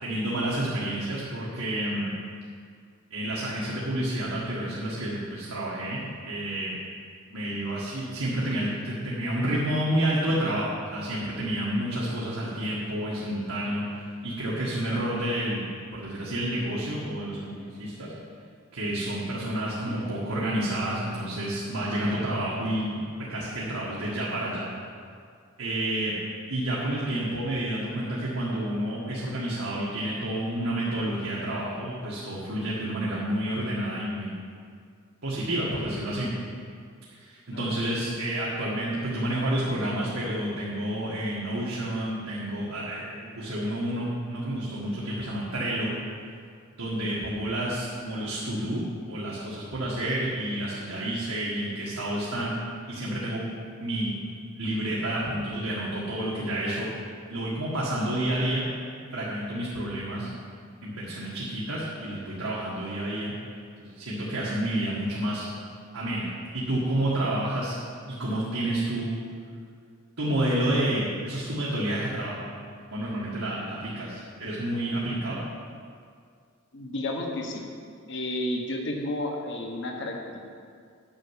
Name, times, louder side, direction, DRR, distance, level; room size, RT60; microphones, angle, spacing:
voice 1, 0.0-2.1 3.1-6.7 7.3-15.6 15.9-18.1 18.7-23.0 23.3-24.7 25.6-26.2 26.5-34.4 35.2-36.3 37.1-45.9 46.8-52.6 52.9-53.5 53.8-54.2 54.6-56.9 57.3-58.7 59.1-60.3 60.8-63.3 63.8-65.4 65.9-67.8 68.1-69.2 70.2-72.5 72.8-75.4, right 1 dB, 90° right, -7 dB, 1.7 m, -29 dB
voice 2, 37.5-38.0 76.7-77.6 78.1-80.4, left 1 dB, 60° left, 2 dB, 1.3 m, -32 dB
9.0 x 6.0 x 8.3 m, 2.2 s
head